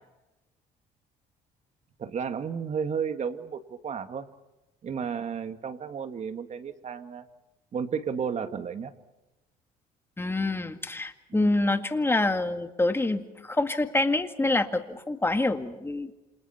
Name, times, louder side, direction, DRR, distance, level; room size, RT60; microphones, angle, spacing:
voice 1, 2.0-4.3 4.8-7.3 7.7-8.9 11.3-11.5, right 6 dB, 45° right, 9 dB, 2.0 m, -33 dB
voice 2, 10.2-16.1, left 2 dB, 15° left, 7 dB, 2.0 m, -26 dB
28.5 x 27.5 x 4.4 m, 1.0 s
cardioid pair, 110°, 17 cm